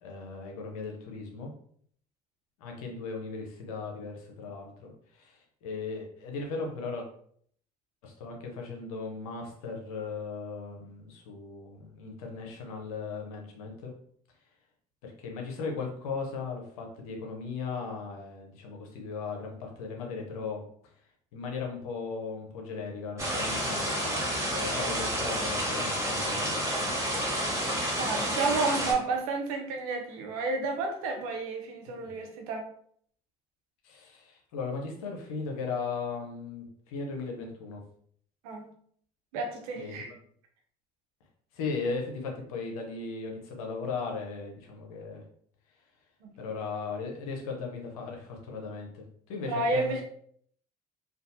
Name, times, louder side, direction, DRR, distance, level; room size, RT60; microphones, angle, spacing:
voice 1, 0.0-1.5 2.6-7.1 8.0-13.9 15.0-20.6 21.3-27.0 31.9-32.1 33.8-37.8 39.8-40.0 41.5-45.2 46.4-50.0, left 4 dB, 90° left, 1 dB, 0.7 m, -37 dB
sound 1, 23.2-28.9, equal, 15° right, 1.3 m, -30 dB
voice 2, 28.0-32.7 38.4-38.7 39.3-40.1 46.2-46.3 49.4-50.0, right 3 dB, 85° right, 3 dB, 0.6 m, -31 dB
2.6 x 2.3 x 2.6 m, 0.62 s
hypercardioid pair, 65°, 18 cm